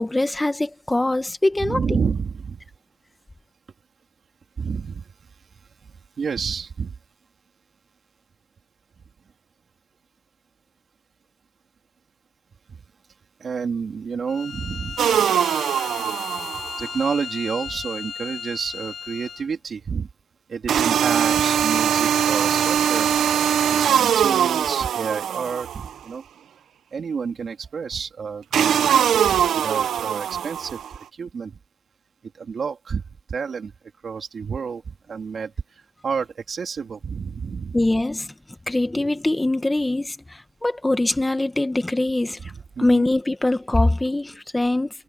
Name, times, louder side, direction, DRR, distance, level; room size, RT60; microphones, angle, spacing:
voice 1, 0.0-2.0 37.7-38.3 38.7-42.5 42.8-44.9, left 2 dB, 15° left, 1.8 m, -23 dB
voice 2, 1.6-2.6 4.6-5.1 6.2-6.9 13.4-15.0 16.8-20.1 20.5-23.1 23.7-26.2 26.9-30.8 31.1-31.5 32.4-33.0 33.3-33.7 34.0-35.5 36.0-37.8 42.4-43.0, right 6 dB, 55° right, 3.4 m, -29 dB
Bowed string instrument, 14.3-19.5, left 7 dB, 60° left, 6.8 m, -35 dB
sound 1, 15.0-16.9 20.7-26.0 28.5-30.9, right 9 dB, 85° right, 0.7 m, -21 dB
cardioid pair, 100°, 0 cm